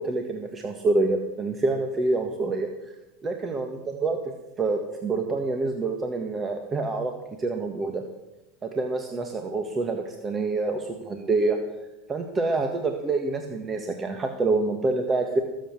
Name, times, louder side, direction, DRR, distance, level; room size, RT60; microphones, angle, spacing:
voice 1, 0.0-2.7 3.2-4.3 4.6-7.1 7.4-8.0 8.6-11.6 12.1-15.4, right 3 dB, 25° right, 4 dB, 1.7 m, -27 dB
19.0 x 7.9 x 7.5 m, 0.97 s
supercardioid pair, 110°, 0 cm